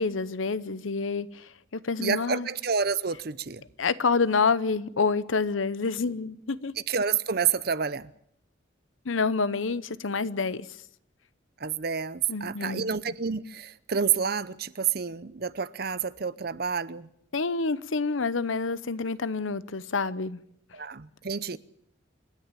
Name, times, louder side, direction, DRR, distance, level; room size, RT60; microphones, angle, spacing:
voice 1, 0.0-2.5 3.8-6.7 9.0-10.7 12.3-12.9 17.3-20.4, left 4 dB, 85° left, 0.8 m, -28 dB
voice 2, 2.0-3.6 6.9-8.1 11.6-17.1 20.7-21.6, right 6 dB, 50° right, 0.7 m, -29 dB
28.0 x 10.0 x 9.1 m
head